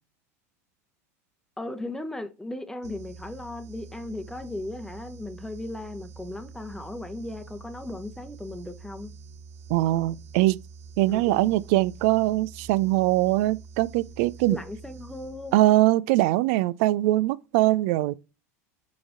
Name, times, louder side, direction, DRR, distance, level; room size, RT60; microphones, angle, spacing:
voice 1, 1.6-9.1 11.1-11.4 14.5-15.5, left 2 dB, 5° left, 0.9 m, -36 dB
sound 1, 2.8-16.0, right 5 dB, 75° right, 1.1 m, -46 dB
voice 2, 9.7-10.6 11.0-14.6 15.5-18.1, right 17 dB, 60° right, 0.4 m, -22 dB
5.2 x 4.8 x 3.7 m
hypercardioid pair, 85°, 8 cm